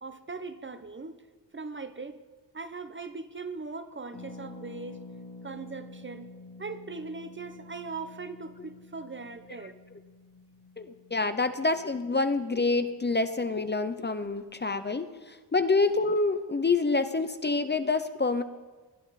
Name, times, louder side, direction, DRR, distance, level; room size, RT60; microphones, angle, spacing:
voice 1, 0.0-1.2 1.5-2.2 2.5-5.0 5.4-6.3 6.6-9.8, right 4 dB, 30° right, 10 dB, 0.7 m, -40 dB
Harp, 4.1-13.7 14.0-14.1 14.3-14.6, left 3 dB, 70° left, 2.3 m, -49 dB
voice 2, 10.8-18.4, left 3 dB, 25° left, 10 dB, 0.6 m, -27 dB
21.0 x 12.5 x 4.1 m, 1.4 s
wide cardioid pair, 155°, 42 cm